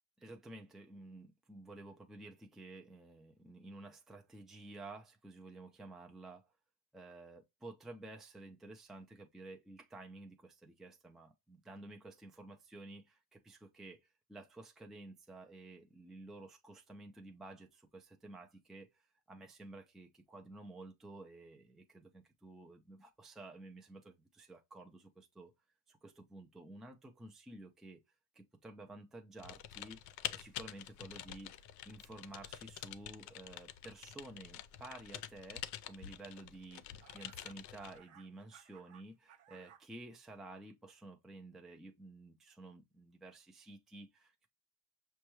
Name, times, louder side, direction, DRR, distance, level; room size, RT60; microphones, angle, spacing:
voice 1, 0.2-6.5 6.9-25.5 25.9-28.0 28.3-31.5 31.8-44.5, right 2 dB, ahead, 0.4 m, -52 dB
Typing, 29.4-38.0, left 12 dB, 65° left, 0.6 m, -47 dB
sound 1, 29.8-35.0 35.6-35.8 36.6-36.7 37.0-39.8, right 10 dB, 50° right, 0.7 m, -65 dB
6.4 x 2.3 x 3.0 m
cardioid pair, 175°, 31 cm